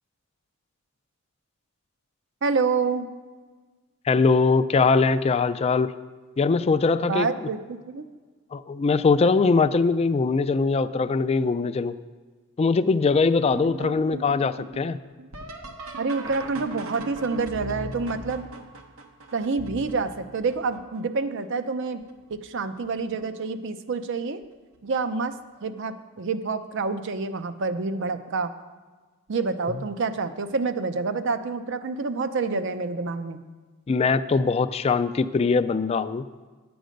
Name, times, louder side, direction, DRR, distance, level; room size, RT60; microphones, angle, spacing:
voice 1, 2.4-3.1 7.0-8.0 13.8-13.9 16.0-18.5 19.3-22.0 22.3-24.4 24.8-25.3 25.6-28.5 29.3-33.4, right 4 dB, 60° right, 10 dB, 0.6 m, -27 dB
voice 2, 4.1-5.9 6.4-7.5 8.5-12.0 12.6-15.0 33.9-36.3, left 4 dB, 30° left, 13 dB, 0.3 m, -22 dB
sound 1, 13.5-21.2 21.9-22.4 22.8-23.5 24.7-24.8 25.6-25.9 28.1-28.2 30.5-30.6, right 2 dB, 80° right, 1.1 m, -40 dB
10.0 x 7.8 x 5.2 m, 1.4 s
head